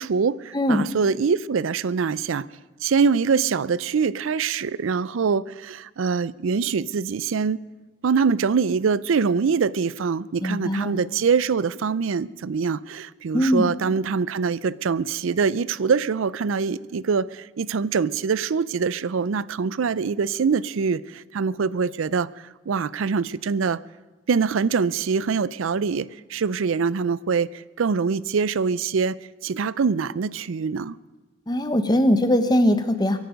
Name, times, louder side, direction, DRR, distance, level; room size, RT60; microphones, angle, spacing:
voice 1, 0.0-2.5 2.8-7.6 8.0-23.8 24.3-29.2 29.4-31.0, right 5 dB, 80° right, 20 dB, 0.4 m, -24 dB
voice 2, 0.5-0.9 10.4-10.9 13.3-13.7 31.5-33.2, equal, 20° left, 9 dB, 1.1 m, -20 dB
24.0 x 11.5 x 5.2 m, 1.2 s
head